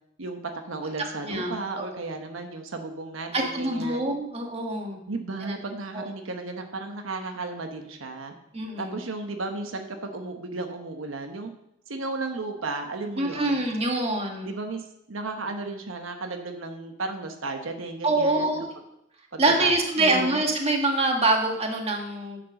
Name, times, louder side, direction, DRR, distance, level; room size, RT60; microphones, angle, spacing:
voice 1, 0.7-4.0 5.1-8.3 8.8-11.5 11.9-13.6 14.4-18.6 19.3-19.7 20.0-20.4, right 3 dB, 85° right, 5 dB, 1.0 m, -34 dB
voice 2, 1.2-2.0 3.3-5.0 5.4-5.5 5.9-6.1 8.5-9.0 13.2-14.5 18.0-18.7 19.4-22.4, right 2 dB, 30° right, 2 dB, 1.5 m, -25 dB
9.7 x 5.3 x 6.5 m, 0.80 s
head